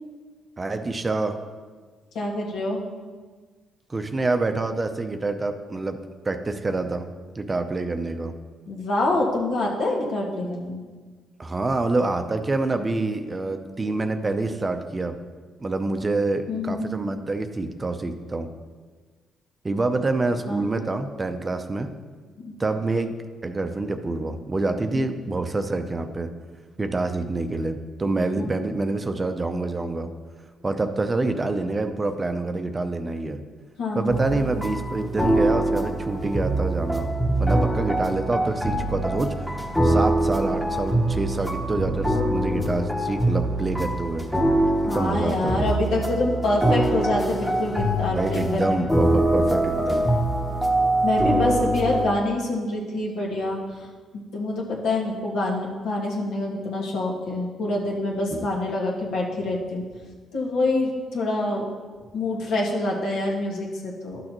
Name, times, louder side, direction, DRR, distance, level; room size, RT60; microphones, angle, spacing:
voice 1, 0.6-1.4 3.9-6.0 6.2-7.1 7.4-8.3 11.4-15.2 15.6-18.5 19.6-21.9 22.6-23.1 23.4-26.3 26.8-30.1 30.6-33.4 33.9-37.1 37.4-39.3 39.8-44.3 44.9-45.7 48.1-50.1 58.3-58.5, right 2 dB, 25° right, 7 dB, 0.6 m, -26 dB
voice 2, 2.2-2.8 8.7-10.8 16.5-16.9 20.5-20.7 22.4-22.5 24.9-25.0 28.4-28.5 33.8-34.1 44.8-48.9 51.0-53.6 54.1-59.8 60.3-61.6 62.1-64.2, left 2 dB, 75° left, -3 dB, 1.7 m, -26 dB
sound 1, 34.1-52.1, right 1 dB, 5° left, 1.0 m, -24 dB
11.5 x 6.4 x 3.0 m, 1.5 s
cardioid pair, 90°, 0 cm